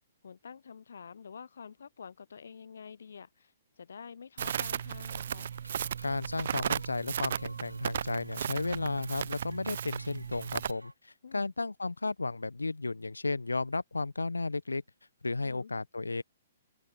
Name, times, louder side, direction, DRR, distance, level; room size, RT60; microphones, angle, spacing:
voice 1, 0.2-5.5 11.2-11.5 15.4-15.7, left 6 dB, 65° left, 0.8 m, -48 dB
Crackle, 4.4-10.7, right 8 dB, 55° right, 0.9 m, -35 dB
sound 1, 5.5-10.9, right 1 dB, 90° right, 2.7 m, -53 dB
voice 2, 6.0-14.8 15.2-16.2, left 3 dB, 80° left, 1.2 m, -34 dB
figure-of-eight pair, 120°, 0 cm